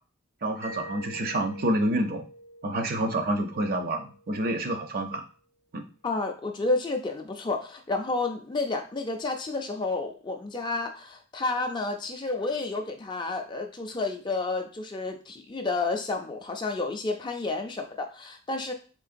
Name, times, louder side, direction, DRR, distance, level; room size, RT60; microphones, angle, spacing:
voice 1, 0.4-2.3 2.6-5.2 5.7-5.8, right 1 dB, 50° right, 5 dB, 0.5 m, -28 dB
Mallet percussion, 0.6-5.2, equal, 75° right, 1.1 m, -47 dB
voice 2, 6.0-18.7, left 3 dB, 25° left, 4 dB, 0.3 m, -30 dB
3.7 x 3.2 x 2.5 m, 0.38 s
head